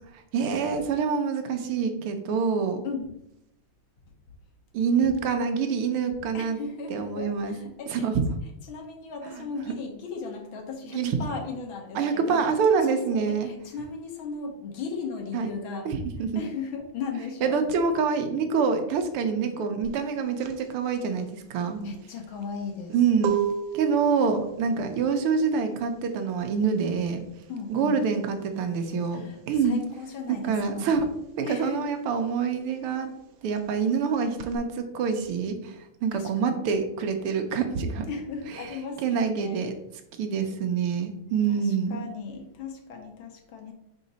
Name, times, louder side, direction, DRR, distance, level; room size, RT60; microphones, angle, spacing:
voice 1, 0.3-2.8 4.7-6.6 6.9-7.5 7.9-8.2 9.2-9.7 10.9-11.2 11.9-13.5 15.3-15.5 15.8-16.4 17.4-21.8 22.9-23.4 23.7-27.2 27.7-29.8 30.3-31.1 31.4-33.1 33.4-35.7 36.0-38.1 39.0-39.7 40.2-42.0, right 5 dB, 85° right, 6 dB, 1.7 m, -26 dB
voice 2, 2.8-3.2 6.3-8.1 8.7-12.4 12.9-15.9 16.3-17.6 21.8-22.9 27.5-28.0 29.1-30.9 31.4-31.9 36.1-36.6 38.1-39.6 41.5-43.7, left 5 dB, 70° left, 3 dB, 1.7 m, -37 dB
sound 1, 19.8-30.1 30.3-34.6, right 8 dB, 70° right, 1.0 m, -35 dB
5.1 x 4.7 x 4.0 m, 0.80 s
omnidirectional pair, 2.4 m